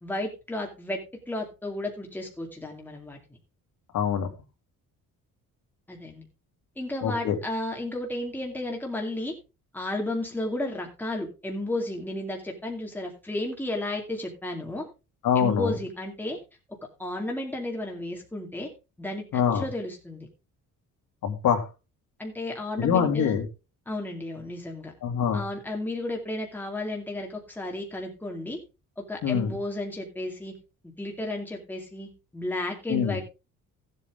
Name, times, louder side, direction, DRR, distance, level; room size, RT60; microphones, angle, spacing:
voice 1, 0.0-1.0 1.3-3.2 5.9-6.2 6.8-9.3 9.7-14.9 15.4-16.4 17.0-18.7 19.0-20.3 22.2-23.4 23.9-24.9 25.3-28.6 29.0-30.5 31.0-33.2, left 1 dB, 5° left, 0 dB, 2.4 m, -33 dB
voice 2, 3.9-4.3 7.0-7.4 15.2-15.7 19.3-19.6 21.2-21.7 22.8-23.5 25.0-25.4 29.2-29.5 32.9-33.2, left 7 dB, 70° left, 2 dB, 2.7 m, -24 dB
15.0 x 8.2 x 3.7 m, 0.29 s
cardioid pair, 165°, 32 cm